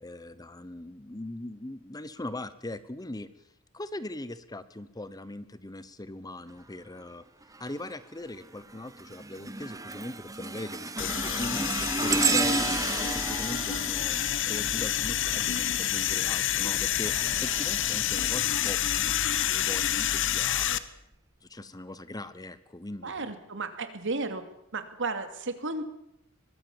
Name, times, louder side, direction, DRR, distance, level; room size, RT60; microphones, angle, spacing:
voice 1, 0.0-3.3 3.7-7.2 7.6-12.7 13.0-14.2 14.4-20.7 21.4-23.3, left 1 dB, 20° left, 14 dB, 1.0 m, -40 dB
sound 1, 7.5-7.9 8.4-15.2 16.5-18.7 19.3-19.5 20.4-20.5, right 3 dB, 15° right, 1.1 m, -32 dB
sound 2, 11.0-20.8, left 11 dB, 60° left, 1.2 m, -28 dB
voice 2, 23.0-24.4 24.7-25.8, right 3 dB, 60° right, 9 dB, 2.6 m, -33 dB
23.5 x 21.0 x 7.3 m, 0.80 s
head